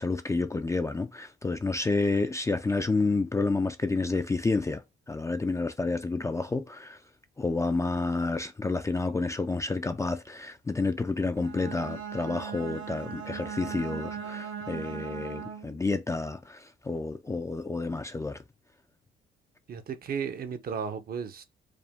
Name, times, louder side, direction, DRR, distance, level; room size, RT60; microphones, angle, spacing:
voice 1, 0.0-7.0 7.4-18.4, left 3 dB, 15° left, 0.4 m, -30 dB
Bowed string instrument, 11.4-15.8, right 7 dB, 85° right, 0.7 m, -38 dB
voice 2, 19.7-21.4, right 6 dB, 50° right, 0.7 m, -34 dB
4.9 x 2.1 x 3.4 m
cardioid pair, 90°, 20 cm